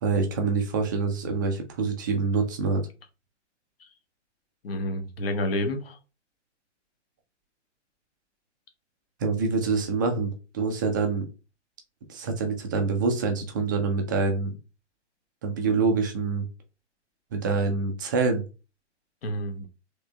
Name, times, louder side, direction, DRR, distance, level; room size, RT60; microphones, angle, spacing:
voice 1, 0.0-2.8 9.2-11.3 12.1-14.6 15.4-16.5 17.3-18.4, right 4 dB, 20° right, 4 dB, 0.3 m, -26 dB
voice 2, 4.6-6.0 19.2-19.7, left 1 dB, 55° left, 6 dB, 1.0 m, -29 dB
3.4 x 3.1 x 2.2 m, 0.31 s
figure-of-eight pair, 115°, 36 cm